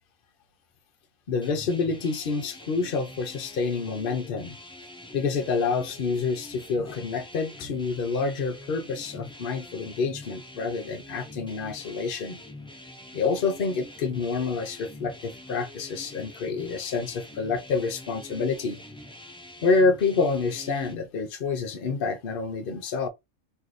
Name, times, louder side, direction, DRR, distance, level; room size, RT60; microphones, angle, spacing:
voice 1, 1.3-4.6 5.1-12.4 13.1-18.8 19.6-23.1, left 4 dB, 50° left, 0.8 m, -28 dB
sound 1, 1.4-20.9, left 1 dB, 5° left, 0.5 m, -45 dB
3.2 x 2.8 x 3.9 m
omnidirectional pair, 1.4 m